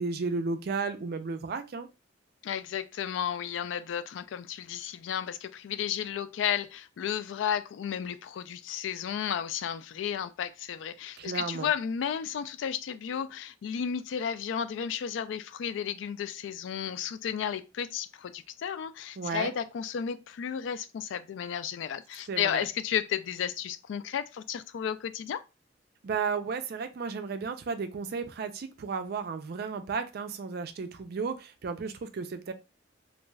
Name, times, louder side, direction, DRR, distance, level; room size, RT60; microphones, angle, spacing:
voice 1, 0.0-1.9 11.2-11.7 19.2-19.5 22.3-22.6 26.0-32.5, right 4 dB, 55° right, 0.4 m, -33 dB
voice 2, 2.4-25.4, left 8 dB, 80° left, 0.3 m, -33 dB
2.5 x 2.3 x 3.1 m
head